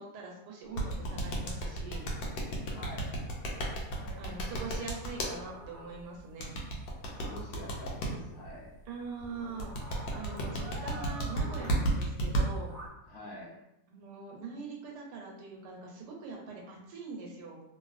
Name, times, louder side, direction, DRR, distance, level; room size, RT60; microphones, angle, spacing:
voice 1, 0.0-2.0 4.2-6.5 8.9-12.7 13.9-17.6, right 4 dB, 80° right, -1 dB, 1.3 m, -43 dB
sound 1, 0.8-5.3 6.4-8.1 9.6-12.4, right 2 dB, 85° left, 1.3 m, -31 dB
sound 2, 2.6-12.9, right 1 dB, 50° right, 0.9 m, -49 dB
voice 2, 2.7-3.1 3.9-4.7 7.1-8.7 10.2-10.6 13.1-13.6, left 1 dB, 65° left, -3 dB, 1.1 m, -47 dB
3.0 x 2.7 x 2.4 m, 0.86 s
omnidirectional pair, 1.9 m